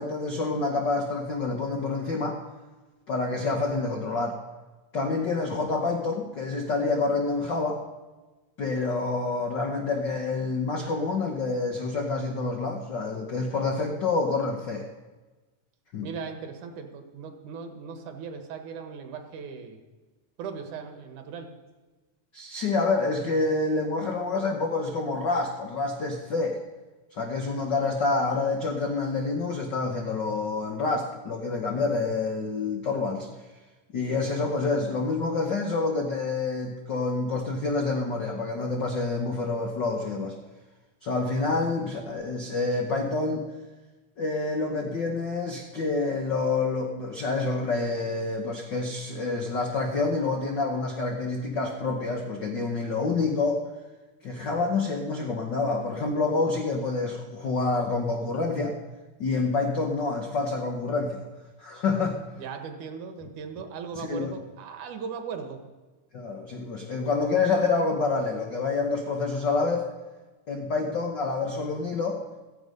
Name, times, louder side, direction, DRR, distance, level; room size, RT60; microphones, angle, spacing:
voice 1, 0.0-2.4 3.1-4.4 4.9-7.8 8.6-14.9 15.9-16.1 22.3-26.6 27.1-33.3 33.9-40.3 41.0-43.5 44.2-53.6 54.2-58.7 59.2-61.2 61.6-62.2 63.9-64.3 66.1-69.9 70.5-72.2, left 3 dB, 75° left, 2 dB, 1.0 m, -27 dB
voice 2, 16.0-19.8 20.4-21.5 62.4-65.6, right 6 dB, 70° right, 6 dB, 2.7 m, -38 dB
15.5 x 15.0 x 5.3 m, 1.2 s
omnidirectional pair, 3.7 m